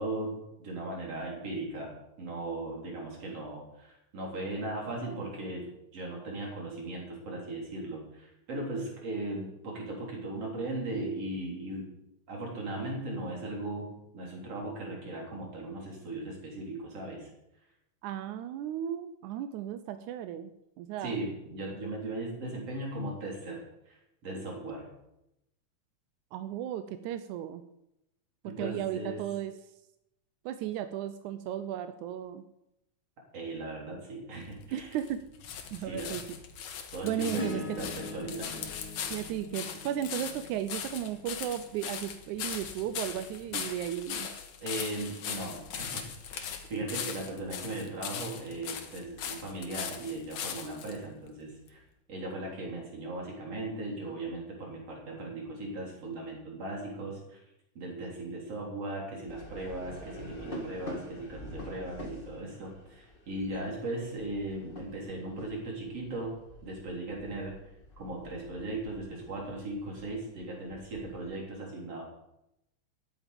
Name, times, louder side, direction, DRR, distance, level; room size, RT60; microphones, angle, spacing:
voice 1, 0.0-11.9 12.3-17.3 21.0-24.9 28.4-29.2 33.3-34.9 35.8-36.2 36.9-38.7 44.6-46.0 46.3-51.8 52.1-57.4 57.7-66.3 66.6-67.6 68.0-72.0, right 2 dB, 55° right, -2 dB, 4.8 m, -38 dB
voice 2, 18.0-20.5 20.8-21.2 26.3-27.6 28.4-29.5 30.5-32.4 34.7-35.2 35.7-36.2 37.0-37.8 39.1-44.3, right 10 dB, 90° right, 10 dB, 2.1 m, -35 dB
sound 1, 34.4-51.0 51.7-51.8, left 8 dB, 90° left, 2.8 m, -40 dB
Acoustic guitar / Strum, 37.3-41.9 43.8-43.9, left 2 dB, 50° left, 1.3 m, -43 dB
sound 2, 59.3-71.4, left 1 dB, 20° left, 1.6 m, -47 dB
13.0 x 11.0 x 5.2 m, 0.85 s
omnidirectional pair, 3.4 m